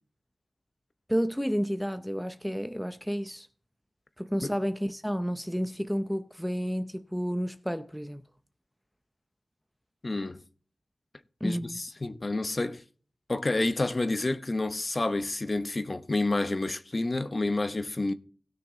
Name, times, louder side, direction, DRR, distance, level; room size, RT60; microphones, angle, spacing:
voice 1, 1.1-3.5 4.2-8.2 11.4-11.8, equal, ahead, 0.6 m, -31 dB
voice 2, 10.0-10.4 11.4-12.8 13.3-18.1, left 2 dB, 35° left, 0.9 m, -29 dB
17.0 x 6.5 x 3.8 m
wide cardioid pair, 95°, 0 cm